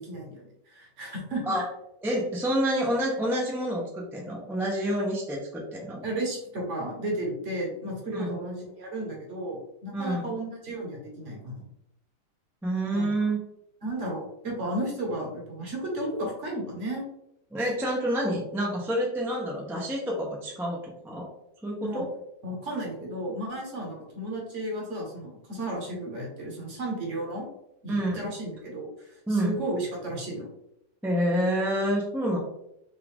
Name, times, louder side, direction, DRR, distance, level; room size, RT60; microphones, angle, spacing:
voice 1, 0.0-1.4 6.0-11.7 12.9-13.1 13.8-17.0 21.8-22.0 22.4-27.5 27.8-30.5, right 1 dB, 45° right, -2 dB, 1.4 m, -33 dB
voice 2, 2.0-6.0 8.1-8.4 9.9-10.3 12.6-13.4 17.5-21.3 21.6-22.1 27.9-28.3 29.3-29.5 31.0-32.4, right 1 dB, 5° right, -3 dB, 0.4 m, -28 dB
5.5 x 2.5 x 3.5 m, 0.80 s
omnidirectional pair, 1.9 m